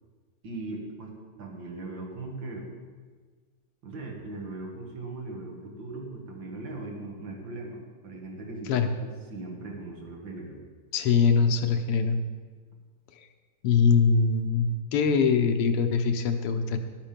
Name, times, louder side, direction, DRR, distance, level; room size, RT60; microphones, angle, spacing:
voice 1, 0.4-2.7 3.8-10.6, right 2 dB, 60° right, 0 dB, 2.4 m, -39 dB
voice 2, 10.9-12.2 13.6-16.8, left 5 dB, 90° left, 7 dB, 1.8 m, -23 dB
12.0 x 8.8 x 5.1 m, 1.5 s
omnidirectional pair, 2.4 m